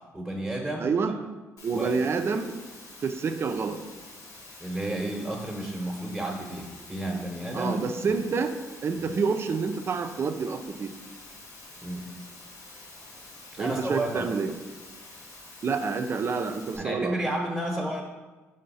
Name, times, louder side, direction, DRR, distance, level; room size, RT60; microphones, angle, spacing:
voice 1, 0.1-0.9 1.7-2.0 4.6-7.7 8.1-8.2 9.0-9.1 11.8-12.1 13.5-14.3 16.8-18.0, right 1 dB, 10° right, -1 dB, 1.0 m, -32 dB
voice 2, 0.8-1.2 1.6-2.5 3.0-3.8 7.5-8.5 8.8-10.9 13.6-14.5 15.6-17.2, right 5 dB, 50° right, 8 dB, 0.6 m, -28 dB
Water, 1.6-16.8, left 2 dB, 85° left, 1.7 m, -47 dB
5.4 x 3.5 x 5.5 m, 1.2 s
cardioid pair, 80°, 5 cm